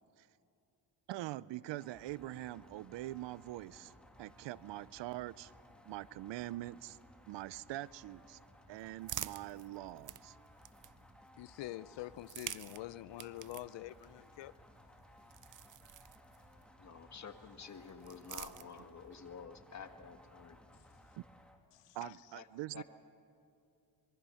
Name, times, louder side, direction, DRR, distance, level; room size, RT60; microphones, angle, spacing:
voice 1, 1.1-5.5 5.9-7.0 7.3-8.4 8.7-10.4 21.9-22.8, right 16 dB, 85° right, 0.6 m, -44 dB
sound 1, 1.8-21.6, left 1 dB, ahead, 2.2 m, -60 dB
sound 2, 8.2-11.3 12.1-16.7 17.7-19.2, right 11 dB, 45° right, 0.6 m, -49 dB
voice 2, 11.4-14.5 21.7-22.1, left 15 dB, 90° left, 0.6 m, -46 dB
voice 3, 16.8-20.6 22.3-22.5 22.7-22.8, left 6 dB, 40° left, 1.7 m, -50 dB
26.0 x 22.5 x 5.7 m
cardioid pair, 100°, 42 cm